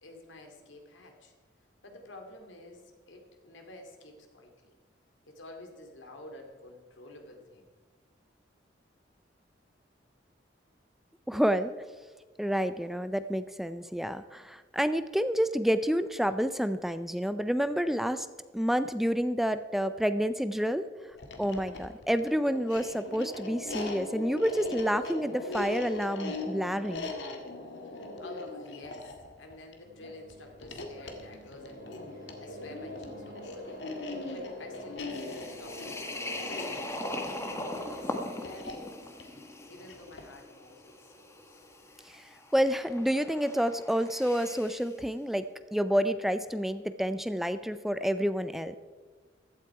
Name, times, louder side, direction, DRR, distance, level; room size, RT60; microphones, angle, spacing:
voice 1, 0.0-1.3 1.8-4.8 5.2-7.7 28.2-39.1 39.7-41.6, left 1 dB, 85° left, 3 dB, 2.4 m, -50 dB
voice 2, 11.3-11.7 12.4-18.3 18.5-20.9 21.4-27.1 42.1-42.2 42.5-48.8, equal, ahead, 12 dB, 0.4 m, -29 dB
sound 1, 21.1-40.4, left 2 dB, 65° left, 1.8 m, -40 dB
sound 2, 29.8-38.0, equal, 60° right, 3.7 m, -51 dB
sound 3, 35.1-44.9, left 1 dB, 15° left, 1.2 m, -40 dB
15.5 x 12.0 x 4.8 m, 1.4 s
head